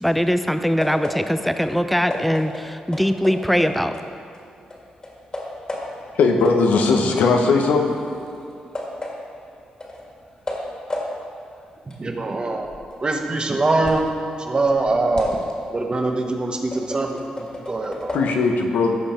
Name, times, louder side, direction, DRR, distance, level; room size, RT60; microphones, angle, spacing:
voice 1, 0.0-3.9, equal, ahead, 9 dB, 0.5 m, -21 dB
sound 1, 0.8-4.4 4.7-6.2 6.4-14.2 14.6-18.2, left 1 dB, 30° left, 2.0 m, -34 dB
voice 2, 6.1-7.9 18.1-19.0, left 4 dB, 85° left, 2 dB, 1.0 m, -18 dB
voice 3, 11.9-12.7 13.0-14.1 14.4-15.4 15.7-18.2, right 2 dB, 35° right, 3 dB, 1.2 m, -23 dB
14.5 x 5.3 x 4.5 m, 2.5 s
cardioid pair, 70°, 3 cm